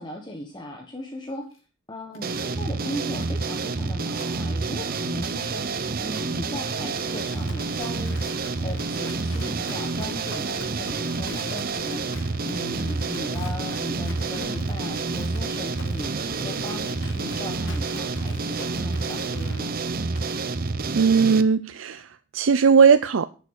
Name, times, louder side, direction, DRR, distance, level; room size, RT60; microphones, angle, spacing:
voice 1, 0.0-1.5 1.9-8.2 8.6-19.7, left 1 dB, 20° left, 2 dB, 1.3 m, -38 dB
sound 1, 1.2-1.6 2.1-3.3 3.7-3.8 4.1-4.9 5.2-7.3 8.2-8.6 9.0-9.5 10.2-10.5 11.1-12.3 13.1-13.5 14.1-14.7 15.1-15.7 16.2-16.6 17.1-17.6 18.2-18.7 19.1-19.5 20.1-20.5, left 2 dB, 85° left, 3.6 m, -49 dB
sound 2, 2.2-21.4, right 3 dB, 45° right, 0.7 m, -28 dB
Livestock farm animals working animals, 4.8-20.3, left 3 dB, 65° left, 1.6 m, -45 dB
voice 2, 21.0-23.2, right 6 dB, 75° right, 12 dB, 0.5 m, -18 dB
11.0 x 7.0 x 6.3 m, 0.36 s
head